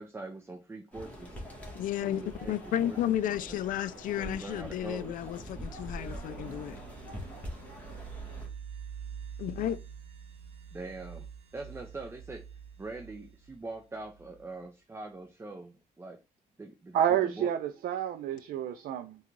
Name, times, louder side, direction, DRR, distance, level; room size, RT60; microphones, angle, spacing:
voice 1, 0.0-1.4 2.0-3.6 4.2-5.2 10.7-11.3 11.5-12.4 12.8-16.2 16.6-17.5, right 3 dB, 15° right, 0.5 m, -43 dB
sound 1, 0.9-8.5, equal, 10° left, 1.3 m, -44 dB
voice 2, 1.8-6.8 9.4-9.8, left 11 dB, 65° left, 0.4 m, -32 dB
sound 2, 4.2-14.6, right 7 dB, 35° right, 1.0 m, -47 dB
voice 3, 16.9-19.2, right 10 dB, 75° right, 0.4 m, -29 dB
3.6 x 2.3 x 3.0 m
cardioid pair, 100°, 15 cm